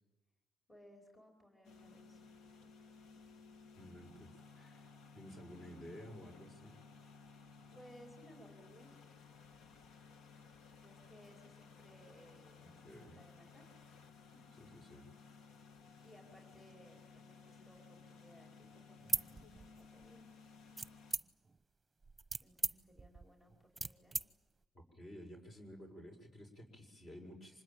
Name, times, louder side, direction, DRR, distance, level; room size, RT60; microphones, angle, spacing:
voice 1, 0.7-2.4 7.7-9.0 10.8-13.6 14.3-14.7 16.0-20.5 22.4-24.2, equal, 15° left, 0 dB, 5.2 m, -62 dB
sound 1, 1.6-21.2, left 5 dB, 80° left, 1.4 m, -58 dB
voice 2, 3.7-6.8 12.6-13.2 14.6-15.1 24.7-27.6, equal, 40° left, 3 dB, 6.3 m, -53 dB
sound 2, 19.0-20.1 20.8-21.6 22.0-24.3, right 3 dB, 20° right, 1.0 m, -38 dB
26.0 x 20.5 x 9.2 m, 1.1 s
cardioid pair, 90°, 0 cm